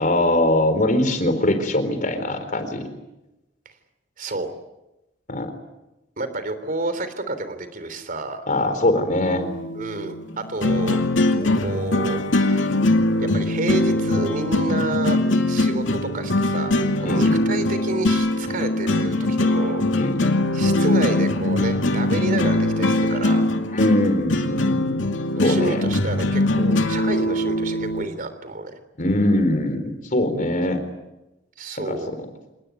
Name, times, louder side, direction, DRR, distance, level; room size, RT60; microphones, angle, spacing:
voice 1, 0.0-2.8 5.3-5.5 8.5-9.5 17.0-17.4 20.0-20.4 23.7-25.1 25.4-25.8 29.0-30.8 31.9-32.0, left 1 dB, 45° left, 9 dB, 4.2 m, -22 dB
voice 2, 4.2-4.5 6.2-8.5 9.7-11.0 11.6-12.8 13.2-15.2 15.5-19.8 20.5-23.5 25.4-28.8 31.6-32.1, right 2 dB, 50° right, 11 dB, 3.4 m, -29 dB
sound 1, 9.2-28.0, left 1 dB, 90° left, 2.3 m, -22 dB
27.5 x 19.5 x 9.5 m, 0.98 s
head